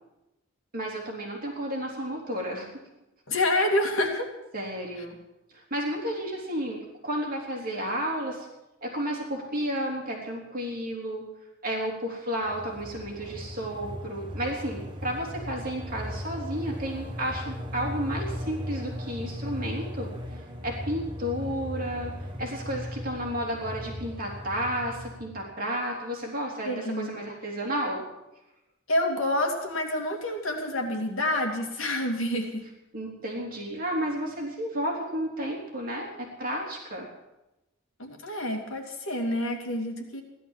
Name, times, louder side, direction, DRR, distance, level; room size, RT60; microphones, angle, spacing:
voice 1, 0.7-2.7 4.5-5.1 5.5-8.5 8.8-11.2 11.6-22.1 22.4-28.0 32.9-37.1, equal, 40° right, -1 dB, 3.4 m, -32 dB
voice 2, 3.3-4.3 26.6-27.1 28.9-32.6 38.0-40.2, left 1 dB, 65° left, 2 dB, 2.7 m, -28 dB
sound 1, 12.4-25.5, equal, 20° right, 1.5 m, -37 dB
16.0 x 11.5 x 7.4 m, 0.94 s
head